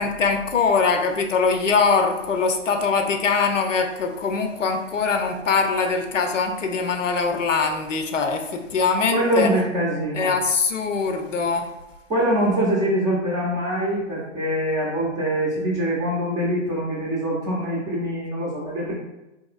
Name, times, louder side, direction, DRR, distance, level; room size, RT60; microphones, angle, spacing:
voice 1, 0.0-9.5 10.1-11.7, left 4 dB, 85° left, 5 dB, 0.7 m, -22 dB
voice 2, 9.1-10.4 12.1-18.9, right 1 dB, 10° right, -5 dB, 0.5 m, -24 dB
4.1 x 2.9 x 2.4 m, 0.98 s
hypercardioid pair, 140°, 37 cm